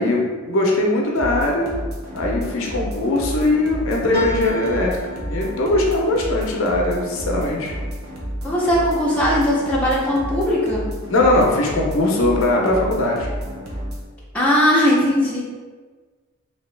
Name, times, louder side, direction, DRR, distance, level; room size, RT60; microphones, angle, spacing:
voice 1, 0.0-1.7 2.1-5.0 5.3-7.8 11.1-13.3, left 2 dB, 60° left, -1 dB, 0.5 m, -20 dB
sound 1, 1.1-14.0, equal, 80° right, 0.8 m, -31 dB
sound 2, 4.1-8.9 9.4-10.1 10.4-10.5, right 1 dB, 45° right, 0.8 m, -32 dB
voice 2, 8.4-10.9 14.3-15.4, equal, 5° left, -7 dB, 0.6 m, -19 dB
2.9 x 2.7 x 3.2 m, 1.4 s
head